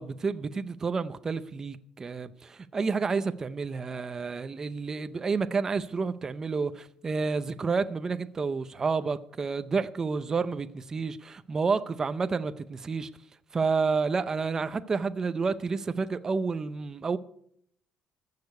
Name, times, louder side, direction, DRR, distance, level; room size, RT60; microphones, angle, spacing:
voice 1, 0.0-13.1 13.5-17.2, right 4 dB, 25° right, 0.6 m, -30 dB
14.5 x 6.7 x 9.6 m
cardioid pair, 155°, 2 cm